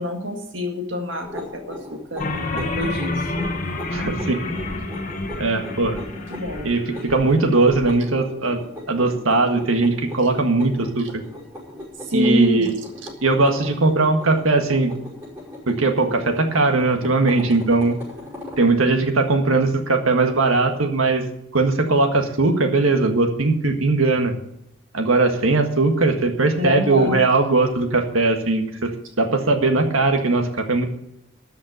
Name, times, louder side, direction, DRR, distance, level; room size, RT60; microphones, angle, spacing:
voice 1, 0.0-3.3 6.3-6.7 11.0-11.1 12.1-12.7 26.6-27.3, equal, 65° right, 3 dB, 1.8 m, -26 dB
sound 1, 1.2-18.7, left 1 dB, 10° right, 5.4 m, -39 dB
sound 2, 2.2-7.9, left 2 dB, 40° left, 1.3 m, -29 dB
voice 2, 3.9-4.4 5.4-6.0 6.6-8.6 8.9-11.2 12.1-12.7 13.2-14.9 15.7-18.0 18.6-21.2 21.5-24.3 24.9-28.9 29.2-30.8, right 3 dB, 85° right, 4 dB, 1.7 m, -19 dB
13.0 x 5.8 x 9.0 m, 0.80 s
head